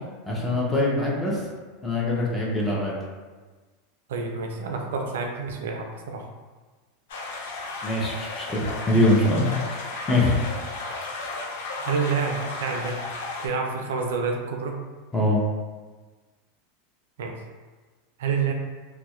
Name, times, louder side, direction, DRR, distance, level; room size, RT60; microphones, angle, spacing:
voice 1, 0.3-1.4 1.8-2.9 7.8-9.5 9.8-10.3 15.1-15.4, left 1 dB, 15° left, -5 dB, 0.7 m, -23 dB
voice 2, 4.1-6.3 11.8-13.0 13.4-14.8 17.2-17.3 18.2-18.5, right 5 dB, 80° right, 2 dB, 0.3 m, -28 dB
sound 1, 7.1-13.5, left 3 dB, 75° left, 0.4 m, -34 dB
2.6 x 2.0 x 2.3 m, 1.3 s
hypercardioid pair, 100°, 0 cm